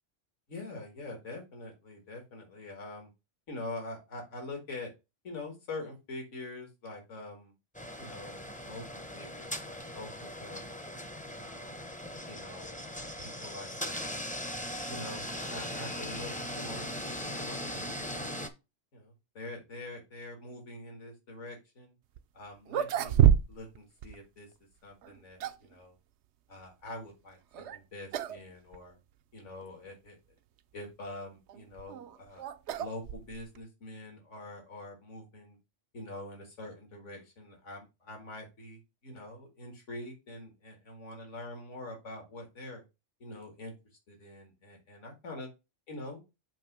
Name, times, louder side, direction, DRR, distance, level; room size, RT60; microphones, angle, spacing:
voice 1, 0.5-3.1 3.5-4.9 5.2-7.5 8.0-8.8 9.1-11.0 11.4-11.8 12.3-14.5 14.9-18.4 18.9-21.9 22.3-23.1 23.5-24.5 24.8-26.0 26.5-29.0 29.3-30.2 30.7-32.5 32.8-35.6 35.9-42.8 43.2-43.7 44.1-45.5 45.9-46.2, left 2 dB, 75° left, 2 dB, 2.2 m, -45 dB
sound 1, 7.7-18.5, equal, 10° left, 0.6 m, -39 dB
sound 2, 22.2-22.3 22.7-23.8 24.0-24.1 25.0-25.7 27.5-27.8 28.1-28.4 28.7-28.8 29.6-29.7 31.5-33.6, right 10 dB, 70° right, 0.8 m, -28 dB
7.3 x 3.0 x 6.0 m, 0.26 s
omnidirectional pair, 1.3 m